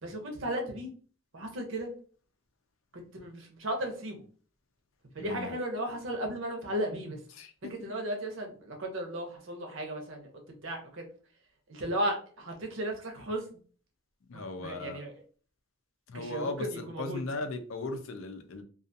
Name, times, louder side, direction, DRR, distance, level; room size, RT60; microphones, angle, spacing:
voice 1, 0.0-0.9 1.3-1.9 2.9-4.2 5.1-7.2 7.7-10.3 10.6-11.1 11.7-13.6 14.3-15.1 16.1-17.2, right 1 dB, 70° right, 2 dB, 0.7 m, -35 dB
voice 2, 5.2-5.6 7.3-7.5 14.3-15.0 16.1-18.6, left 2 dB, 75° left, 7 dB, 0.5 m, -37 dB
2.4 x 2.4 x 2.6 m, 0.42 s
head